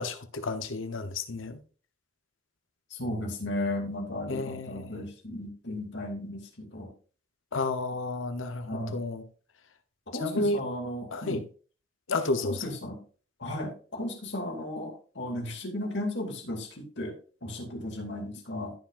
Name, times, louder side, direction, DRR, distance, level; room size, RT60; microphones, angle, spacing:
voice 1, 0.0-1.6 4.3-4.9 7.5-9.2 10.2-10.6 11.1-11.4 12.1-12.6, left 2 dB, 85° left, 1.0 m, -31 dB
voice 2, 2.9-6.9 8.7-9.0 10.1-11.4 12.4-13.0 13.4-17.2 17.4-18.7, left 1 dB, 65° left, 2.5 m, -35 dB
14.5 x 6.1 x 2.6 m
head